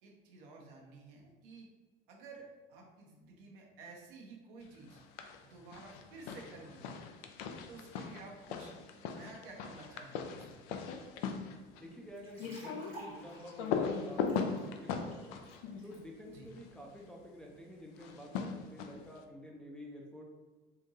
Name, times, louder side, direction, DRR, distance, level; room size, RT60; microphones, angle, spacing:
voice 1, 0.0-1.7 2.1-5.0 5.4-6.9 7.7-8.7 9.1-10.7 16.3-16.5, right 3 dB, 65° right, -1 dB, 0.9 m, -52 dB
sound 1, 4.9-5.4 5.7-16.7 18.0-19.2, left 6 dB, 55° left, 0.4 m, -39 dB
voice 2, 11.8-15.4 15.8-20.2, equal, 5° left, -2 dB, 0.5 m, -50 dB
sound 2, 12.2-16.0, right 1 dB, 85° right, 1.1 m, -53 dB
3.7 x 2.6 x 2.8 m, 1.2 s
figure-of-eight pair, 60°, 29 cm